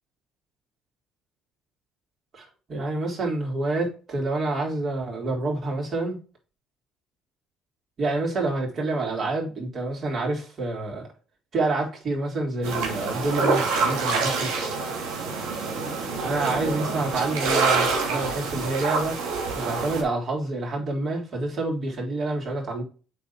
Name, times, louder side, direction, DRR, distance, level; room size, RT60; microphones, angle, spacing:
voice 1, 2.3-6.2 8.0-11.1 11.5-14.5 16.2-19.1 19.5-22.8, right 2 dB, 45° right, 3.9 m, -28 dB
sound 1, 12.6-20.0, right 4 dB, 80° right, 2.6 m, -26 dB
8.3 x 4.0 x 4.4 m
supercardioid pair, 65°, 0 cm